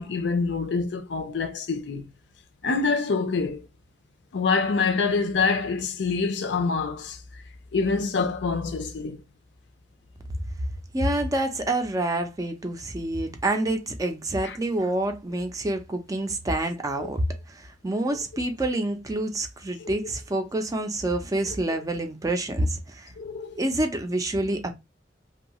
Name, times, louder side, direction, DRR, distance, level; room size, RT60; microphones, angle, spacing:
voice 1, 0.0-2.1 2.6-3.6 4.3-7.2 7.7-9.2 14.4-14.6 17.0-17.1 19.8-19.9 23.2-23.6, left 4 dB, 70° left, 0.5 m, -26 dB
voice 2, 10.9-23.1 23.6-24.7, right 1 dB, 20° right, 0.4 m, -27 dB
2.7 x 2.3 x 2.9 m
head